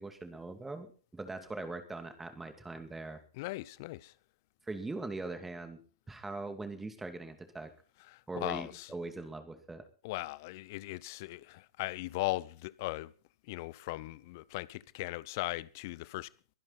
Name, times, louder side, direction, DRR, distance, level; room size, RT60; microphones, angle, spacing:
voice 1, 0.0-3.2 4.7-5.8 6.1-7.7 8.3-9.8, right 2 dB, 10° right, 2.5 m, -41 dB
voice 2, 3.4-4.1 8.1-8.9 10.0-13.1 13.5-16.3, left 19 dB, 50° left, 0.7 m, -38 dB
23.0 x 10.5 x 4.2 m
figure-of-eight pair, 100°, 2 cm